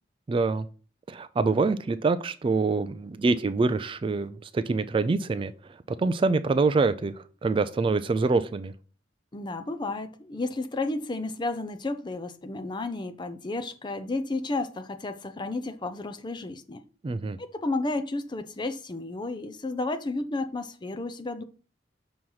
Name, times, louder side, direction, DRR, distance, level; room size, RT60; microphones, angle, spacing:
voice 1, 0.3-0.7 1.1-5.5 6.0-7.1 7.4-8.7 17.0-17.4, right 3 dB, 30° right, 0.3 m, -25 dB
voice 2, 9.3-16.8 17.4-21.4, left 2 dB, 25° left, 0.5 m, -32 dB
6.3 x 3.0 x 5.4 m
head